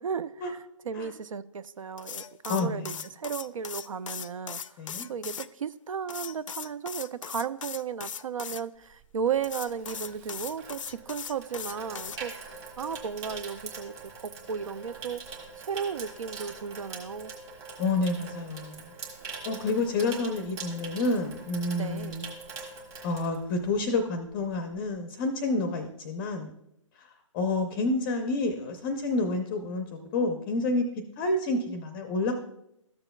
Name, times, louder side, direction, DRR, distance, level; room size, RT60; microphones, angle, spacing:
voice 1, 0.0-4.8 5.1-15.2 15.6-17.3 21.8-22.2, right 7 dB, 80° right, 15 dB, 0.4 m, -35 dB
sound 1, 2.0-5.5 6.1-8.6 9.4-12.2, left 8 dB, 75° left, 0.4 m, -39 dB
voice 2, 2.5-2.9 4.8-5.1 17.8-18.9 19.4-22.2 23.0-26.5 27.0-27.1 27.3-30.9 31.2-32.4, left 2 dB, 20° left, 6 dB, 0.5 m, -29 dB
Water tap faucet / Sink (filling or washing), 8.9-24.0 24.2-24.5, right 4 dB, 20° right, 1.4 m, -43 dB
13.0 x 6.8 x 2.2 m, 0.81 s
hypercardioid pair, 150°, 17 cm